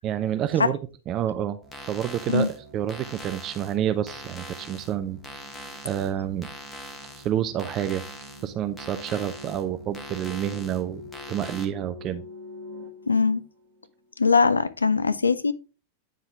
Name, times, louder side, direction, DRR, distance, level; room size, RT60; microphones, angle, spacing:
voice 1, 0.0-0.8 1.1-1.6 1.9-5.4 5.8-6.5 7.2-8.0 8.4-11.0 11.3-12.2, right 10 dB, 35° right, 0.4 m, -28 dB
sound 1, 1.4-14.1, left 1 dB, 55° right, 0.9 m, -47 dB
sound 2, 1.6-11.7, left 1 dB, 15° left, 1.1 m, -43 dB
voice 2, 13.1-13.5 14.2-15.5, left 4 dB, 80° left, 0.4 m, -21 dB
8.8 x 3.7 x 3.4 m
figure-of-eight pair, 90°, 0 cm